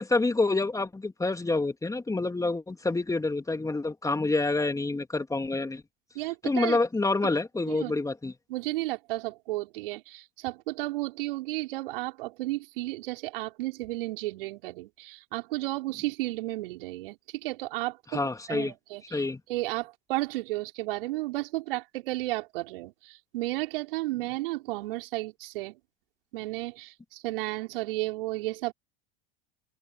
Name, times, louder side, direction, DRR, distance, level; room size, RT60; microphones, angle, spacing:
voice 1, 0.0-5.8 6.4-8.3 18.1-18.7 19.1-19.4, left 3 dB, 10° left, 2.8 m, -27 dB
voice 2, 6.2-6.8 7.7-7.9 8.5-18.2 18.5-19.2 19.5-25.8 26.3-28.7, right 19 dB, 65° right, 5.2 m, -33 dB
open air
figure-of-eight pair, 80°, 30 cm